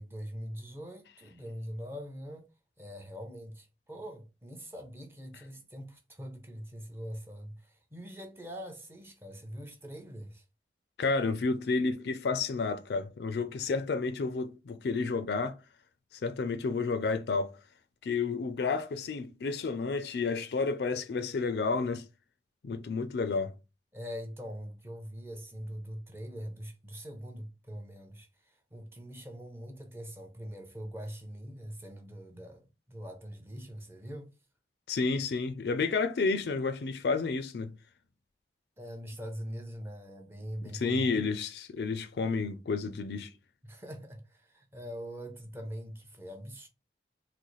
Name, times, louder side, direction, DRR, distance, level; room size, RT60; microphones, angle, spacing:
voice 1, 0.0-2.5 2.8-10.4 23.9-34.3 38.8-41.2 43.6-46.7, equal, 15° right, 0.6 m, -43 dB
voice 2, 11.0-15.6 16.2-17.5 18.0-22.0 22.6-23.5 34.9-37.7 40.7-43.3, left 4 dB, 70° left, 0.4 m, -31 dB
3.9 x 2.1 x 3.0 m
head